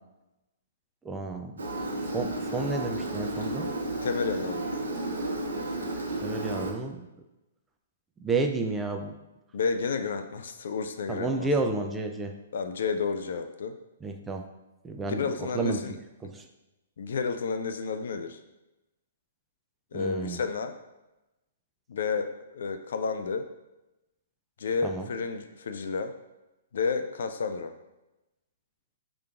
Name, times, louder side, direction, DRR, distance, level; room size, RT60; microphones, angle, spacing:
voice 1, 1.0-1.5 2.1-3.7 6.2-7.1 8.2-9.2 11.1-12.4 14.0-14.5 14.8-15.8 16.2-16.5 19.9-20.4 24.8-25.1, right 3 dB, 15° right, 4 dB, 0.4 m, -31 dB
Engine, 1.6-6.7, right 2 dB, 80° right, 0.7 m, -32 dB
voice 2, 4.0-4.8 9.5-11.5 12.5-13.7 15.0-16.0 17.0-18.4 19.9-20.7 21.9-23.5 24.6-26.1 26.7-27.7, left 5 dB, 65° left, 8 dB, 0.4 m, -31 dB
4.8 x 2.9 x 2.4 m, 0.99 s
hypercardioid pair, 125°, 0 cm